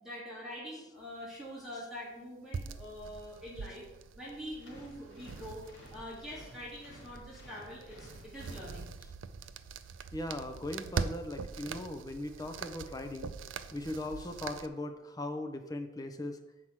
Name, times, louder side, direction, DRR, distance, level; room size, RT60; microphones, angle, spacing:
voice 1, 0.0-3.9 4.2-5.6 5.9-8.9, equal, ahead, -7 dB, 2.5 m, -44 dB
sound 1, 2.5-14.7, right 5 dB, 75° right, 0.4 m, -43 dB
sound 2, 4.6-9.3, equal, 75° left, 2.5 m, -54 dB
voice 2, 10.1-13.3 13.7-16.4, left 1 dB, 20° left, 6 dB, 0.7 m, -39 dB
7.6 x 4.7 x 5.9 m, 0.99 s
head